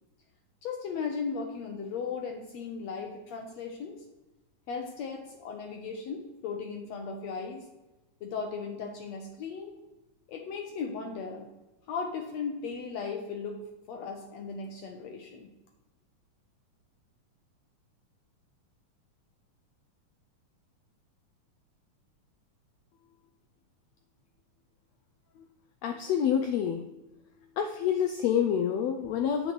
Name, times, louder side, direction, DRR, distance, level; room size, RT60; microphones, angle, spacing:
voice 1, 0.6-4.0 4.7-7.6 8.2-9.7 10.3-11.5 11.9-15.5, left 5 dB, 70° left, 3 dB, 1.7 m, -37 dB
voice 2, 25.8-26.8 27.6-29.5, left 8 dB, 90° left, 5 dB, 1.5 m, -27 dB
9.1 x 8.0 x 3.1 m, 1.0 s
omnidirectional pair, 3.7 m